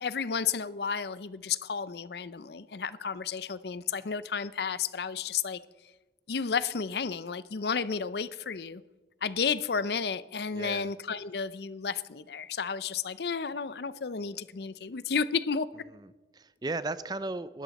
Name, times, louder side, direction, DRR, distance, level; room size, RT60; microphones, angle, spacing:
voice 1, 0.0-5.6 6.3-8.8 9.2-15.7, left 6 dB, 65° left, 0.5 m, -32 dB
voice 2, 10.5-10.9 15.9-17.6, right 2 dB, 20° right, 0.4 m, -36 dB
20.0 x 13.0 x 4.1 m
head